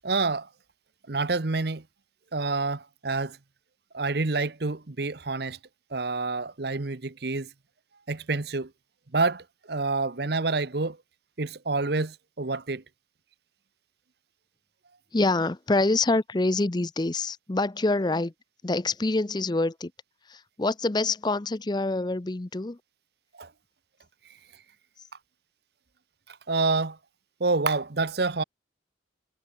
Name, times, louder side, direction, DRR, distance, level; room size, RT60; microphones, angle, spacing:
voice 1, 0.0-0.5 1.1-1.8 2.3-3.4 3.9-5.6 5.9-7.5 8.1-8.7 9.1-11.0 11.4-12.8 23.4-23.5 26.3-27.0 27.4-28.4, right 3 dB, 55° right, 1.0 m, -28 dB
voice 2, 15.1-18.3 18.6-19.9 20.3-22.8, left 2 dB, 25° left, 0.6 m, -26 dB
head